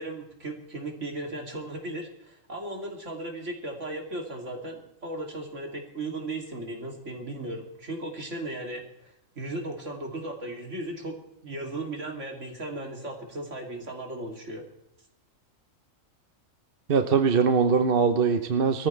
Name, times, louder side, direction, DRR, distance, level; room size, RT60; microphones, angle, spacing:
voice 1, 0.0-11.2 11.4-14.6, right 2 dB, 65° right, 1 dB, 3.2 m, -36 dB
voice 2, 16.9-18.9, right 5 dB, 50° right, 7 dB, 0.9 m, -22 dB
22.0 x 14.5 x 3.3 m, 0.88 s
omnidirectional pair, 1.4 m